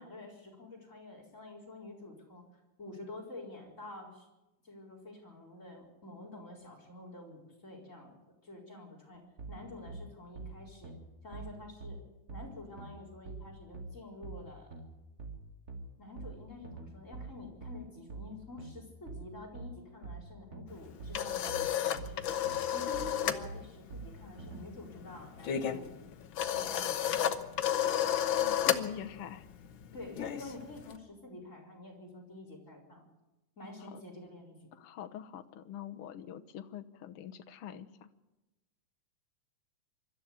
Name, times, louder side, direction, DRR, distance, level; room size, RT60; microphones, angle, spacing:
voice 1, 0.0-2.5 2.8-4.3 4.6-8.2 8.4-9.2 9.5-10.9 11.2-12.0 12.3-14.7 16.0-22.3 22.7-26.0 26.5-27.2 29.9-33.0 33.6-34.7, left 2 dB, 20° left, 1 dB, 4.6 m, -48 dB
sound 1, 9.4-24.6, right 3 dB, 30° right, 2.4 m, -45 dB
sound 2, 20.8-23.5 23.7-24.0 24.3-31.0, left 10 dB, 85° left, 1.1 m, -32 dB
voice 2, 28.4-29.5 33.9-34.0 34.7-38.1, left 9 dB, 65° left, 7 dB, 1.5 m, -44 dB
24.5 x 13.0 x 8.4 m, 1.0 s
omnidirectional pair, 3.6 m